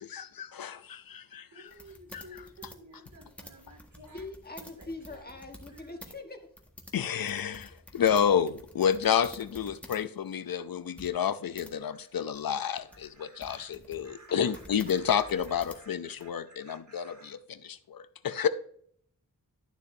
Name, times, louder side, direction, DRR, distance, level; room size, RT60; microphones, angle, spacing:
voice 1, 0.0-1.7 2.1-2.4 6.9-18.5, left 8 dB, 75° left, 0.6 m, -30 dB
voice 2, 1.5-4.2 4.6-5.3 5.7-6.1 8.8-9.3 12.6-13.7 14.0-17.3, right 1 dB, 55° right, 2.4 m, -54 dB
sound 1, 1.7-6.2 6.4-10.0 10.3-10.4 11.0-11.7 12.3-16.2, equal, 5° left, 1.6 m, -50 dB
voice 3, 4.1-6.5, left 2 dB, 25° left, 1.4 m, -43 dB
12.0 x 6.7 x 2.7 m
wide cardioid pair, 65°, 35 cm